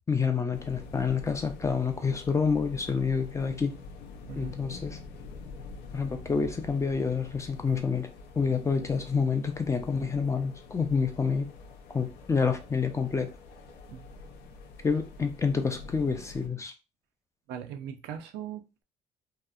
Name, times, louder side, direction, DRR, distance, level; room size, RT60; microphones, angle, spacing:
voice 1, 0.1-3.8 4.4-5.0 5.9-8.1 8.4-11.5 11.9-13.3 14.8-16.7, left 5 dB, 15° left, 0.4 m, -28 dB
sound 1, 0.5-16.5, left 4 dB, 80° left, 0.5 m, -46 dB
voice 2, 17.5-18.8, right 9 dB, 85° right, 0.4 m, -40 dB
2.8 x 2.0 x 2.3 m
cardioid pair, 110°, 17 cm